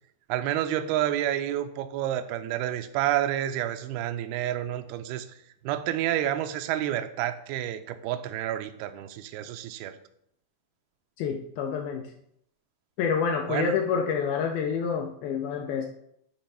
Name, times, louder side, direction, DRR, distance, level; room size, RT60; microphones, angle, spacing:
voice 1, 0.3-5.3 5.6-10.0 13.5-13.7, right 12 dB, 85° right, 8 dB, 2.3 m, -29 dB
voice 2, 11.2-12.1 13.0-15.9, left 6 dB, 90° left, 3 dB, 2.0 m, -28 dB
10.0 x 3.4 x 5.5 m, 0.73 s
omnidirectional pair, 4.9 m